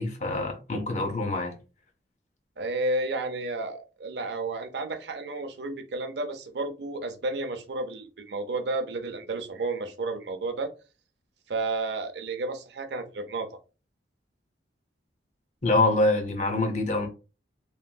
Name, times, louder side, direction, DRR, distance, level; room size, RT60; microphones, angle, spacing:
voice 1, 0.0-1.5 15.6-17.1, left 2 dB, 40° left, 0.6 m, -25 dB
voice 2, 2.6-10.7 11.5-13.5, right 2 dB, 70° right, 0.5 m, -32 dB
3.0 x 2.5 x 2.2 m
head